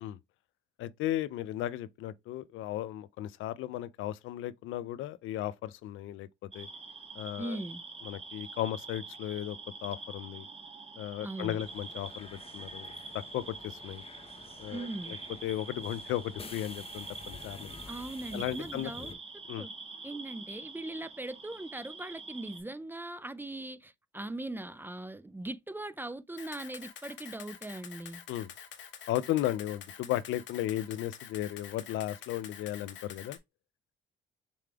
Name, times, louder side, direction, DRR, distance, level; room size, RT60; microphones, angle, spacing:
voice 1, 0.8-6.3 6.5-6.7 7.2-7.6 8.0-10.4 11.0-12.9 13.1-14.0 14.6-15.2 15.4-17.7 18.3-18.9 19.5-19.7 28.3-28.5 29.1-33.4, left 13 dB, 85° left, 0.5 m, -35 dB
sound 1, 6.5-22.6, right 3 dB, 30° right, 1.3 m, -45 dB
voice 2, 7.4-7.8 11.2-11.6 14.7-15.2 17.9-19.1 19.6-19.7 20.0-28.2, right 2 dB, 10° right, 0.4 m, -40 dB
sound 2, 11.6-19.1, left 4 dB, 30° left, 0.8 m, -50 dB
Camera, 26.4-33.4, left 8 dB, 70° left, 1.0 m, -47 dB
6.9 x 3.3 x 2.3 m
cardioid pair, 90°, 20 cm